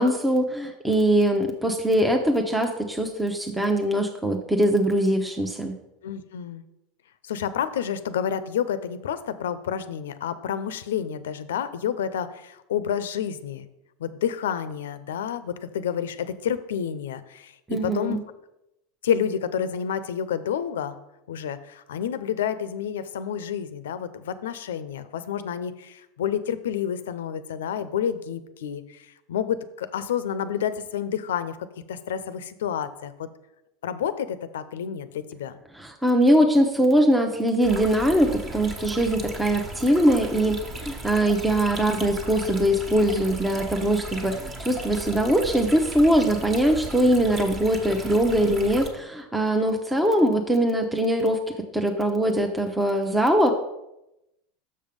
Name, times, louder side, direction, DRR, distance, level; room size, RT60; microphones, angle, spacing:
voice 1, 0.0-5.8 17.7-18.2 35.7-51.4 51.7-53.5, right 1 dB, 10° right, 3 dB, 0.7 m, -22 dB
voice 2, 6.0-6.6 7.2-13.7 14.0-17.5 17.8-18.2 19.0-21.0 21.3-33.3 33.8-35.6, left 8 dB, 85° left, 13 dB, 0.5 m, -29 dB
sound 1, 37.6-48.9, right 1 dB, 30° right, 1.4 m, -36 dB
6.7 x 5.4 x 5.2 m, 0.89 s
hypercardioid pair, 105°, 0 cm